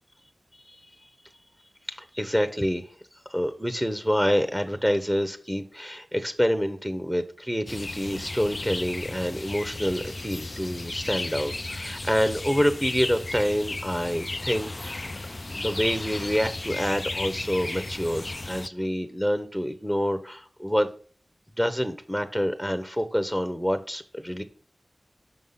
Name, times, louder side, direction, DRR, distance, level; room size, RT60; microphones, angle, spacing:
voice 1, 1.9-2.9 3.3-15.1 15.4-20.9 21.6-24.4, equal, 5° right, 0.9 m, -27 dB
sound 1, 7.7-18.7, left 2 dB, 45° left, 0.3 m, -34 dB
6.0 x 5.6 x 5.6 m
cardioid pair, 45°, 0 cm